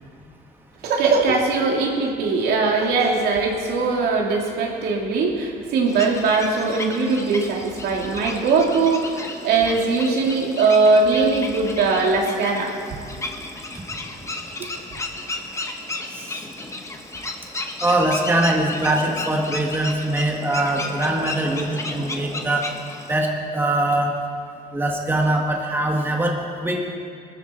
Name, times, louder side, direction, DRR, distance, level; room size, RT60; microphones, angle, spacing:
voice 1, 0.8-12.7 14.6-14.7, right 4 dB, 70° right, 0 dB, 2.7 m, -20 dB
sound 1, 5.9-23.1, left 2 dB, 15° left, 1.5 m, -33 dB
voice 2, 16.1-16.4 17.8-22.7 23.1-24.1 24.7-26.4 26.6-26.8, right 1 dB, 10° right, 0 dB, 1.8 m, -22 dB
20.0 x 13.5 x 4.4 m, 2.6 s
cardioid pair, 110°, 17 cm